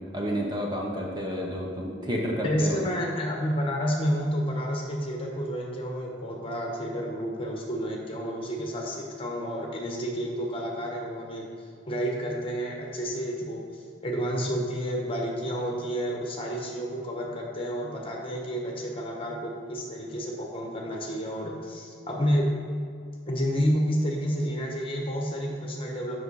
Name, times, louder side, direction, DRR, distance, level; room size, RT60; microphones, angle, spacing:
voice 1, 0.0-2.9, equal, 20° right, -1 dB, 0.8 m, -30 dB
voice 2, 2.4-11.5 11.9-13.6 14.0-22.5 23.3-26.2, equal, 30° left, 0 dB, 1.2 m, -30 dB
7.9 x 6.2 x 4.8 m, 2.3 s
head